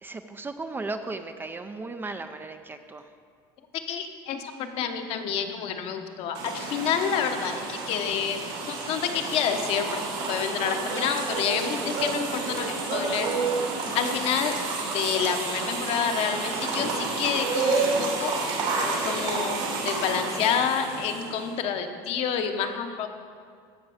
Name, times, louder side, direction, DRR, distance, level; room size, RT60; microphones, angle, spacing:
voice 1, 0.0-3.1, right 3 dB, 15° right, 8 dB, 0.4 m, -36 dB
voice 2, 3.7-8.4 8.7-13.3 13.9-14.5 14.9-18.3 19.0-23.1, left 7 dB, 55° left, 6 dB, 0.9 m, -28 dB
sound 1, 6.3-21.5, right 3 dB, 75° right, 2.8 m, -30 dB
14.5 x 5.9 x 4.9 m, 2.2 s
supercardioid pair, 125°, 12 cm